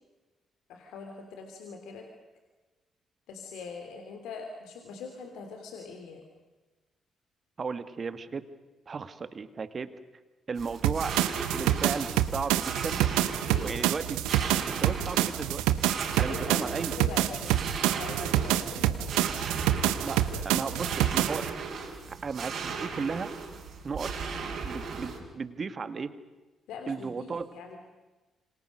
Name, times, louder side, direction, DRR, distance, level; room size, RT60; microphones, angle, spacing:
voice 1, 0.7-2.1 3.3-6.2 13.5-13.9 14.5-14.7 16.3-17.5 18.0-19.2 20.3-21.1 26.7-27.8, left 4 dB, 75° left, 4 dB, 3.0 m, -42 dB
voice 2, 7.6-8.4 8.9-9.9 10.5-11.1 11.5-13.0 13.6-14.2 14.7-15.6 16.2-17.0 20.0-21.5 22.2-23.3 23.8-24.1 24.6-26.1 26.9-27.5, right 5 dB, 45° right, 11 dB, 2.1 m, -35 dB
sound 1, 10.6-25.2, right 5 dB, 65° right, 5.5 m, -37 dB
sound 2, 10.8-21.5, right 13 dB, 85° right, 1.1 m, -27 dB
28.0 x 26.0 x 6.5 m, 1.2 s
hypercardioid pair, 45°, 0 cm